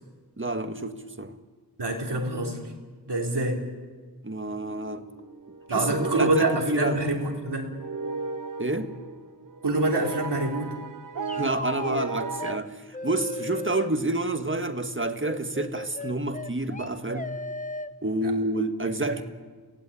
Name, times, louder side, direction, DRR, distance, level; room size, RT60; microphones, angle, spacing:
voice 1, 0.4-1.3 4.2-5.1 5.7-7.0 8.6-8.9 11.4-12.8 13.0-17.3 18.0-19.2, right 2 dB, 30° right, 1.7 m, -29 dB
voice 2, 1.8-2.6 3.1-3.6 5.7-7.7 9.6-10.7 18.2-18.3 19.1-19.2, right 2 dB, 90° right, 3.6 m, -26 dB
sound 1, 4.6-12.6, right 4 dB, 55° right, 0.9 m, -36 dB
sound 2, 11.3-12.1 12.4-12.6 12.9-13.9 15.2-17.9, left 2 dB, 20° left, 0.9 m, -36 dB
27.5 x 17.0 x 8.7 m
wide cardioid pair, 55°, 40 cm